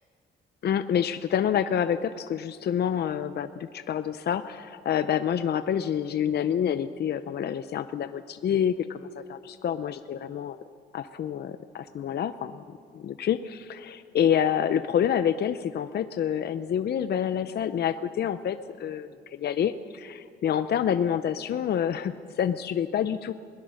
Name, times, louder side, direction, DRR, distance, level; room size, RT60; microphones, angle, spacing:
voice 1, 0.6-10.6 10.9-12.6 12.9-23.3, left 9 dB, 55° left, 11 dB, 0.7 m, -27 dB
21.0 x 19.5 x 6.4 m, 2.3 s
cardioid pair, 90°, 20 cm